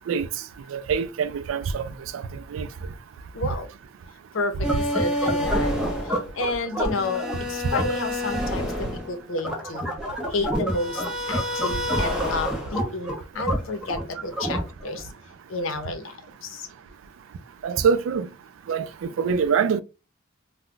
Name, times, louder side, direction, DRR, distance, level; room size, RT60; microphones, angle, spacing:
voice 1, 0.7-2.7 17.6-18.3 18.7-19.8, right 6 dB, 85° right, 0.3 m, -25 dB
voice 2, 3.3-3.7 4.3-9.9 10.3-11.0 11.3-15.1 15.5-16.7, left 2 dB, 90° left, 0.7 m, -31 dB
sound 1, 4.6-15.0, equal, 5° right, 0.6 m, -27 dB
2.3 x 2.2 x 3.7 m
head